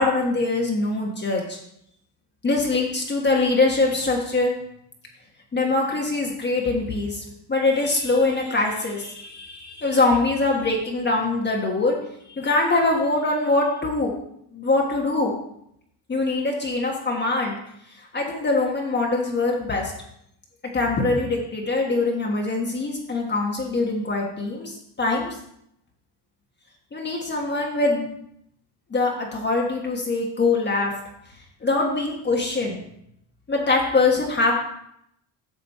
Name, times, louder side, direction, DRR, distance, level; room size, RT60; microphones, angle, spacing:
voice 1, 0.0-1.6 2.4-4.5 5.5-12.0 12.3-14.1 14.5-15.4 16.1-17.6 18.1-19.9 20.7-25.4 26.9-28.2 28.9-30.9 31.6-32.8 33.5-34.5, left 3 dB, 25° left, -1 dB, 1.4 m, -23 dB
8.3 x 7.3 x 4.3 m, 0.76 s
cardioid pair, 135°, 43 cm